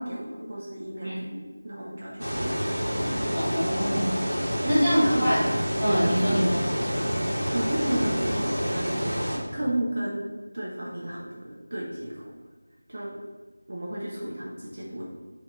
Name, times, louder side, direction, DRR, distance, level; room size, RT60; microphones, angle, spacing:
voice 1, 0.0-2.5 4.6-5.7 6.3-6.4 7.5-9.0 9.5-10.3 10.5-12.3 12.9-13.2 13.7-15.1, right 1 dB, 45° right, -5 dB, 0.6 m, -32 dB
sound 1, 2.2-9.4, equal, 85° right, 1.1 m, -28 dB
voice 2, 3.3-4.2 4.7-5.4 5.8-6.6, equal, ahead, -22 dB, 1.3 m, -24 dB
4.2 x 2.9 x 2.7 m, 1.3 s
figure-of-eight pair, 170°, 0 cm